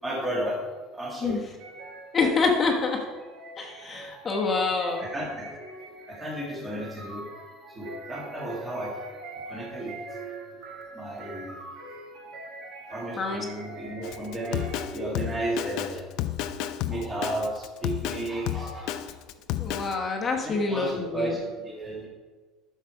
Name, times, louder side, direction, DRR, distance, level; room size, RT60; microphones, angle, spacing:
voice 1, 0.0-0.6 0.9-1.4 5.0-5.5 6.1-7.3 7.7-9.0 9.5-10.0 10.9-11.6 12.9-16.1 16.9-19.2 20.4-22.1, right 1 dB, 10° right, -3 dB, 1.7 m, -33 dB
sound 1, 1.6-15.2, right 3 dB, 45° right, 1.3 m, -43 dB
voice 2, 2.1-3.0 3.6-5.0 13.2-13.4 19.6-21.4, left 4 dB, 20° left, 0 dB, 1.1 m, -26 dB
Drum kit, 14.0-19.9, left 12 dB, 50° left, 0.5 m, -31 dB
11.5 x 6.6 x 4.6 m, 1.4 s
cardioid pair, 170°, 0 cm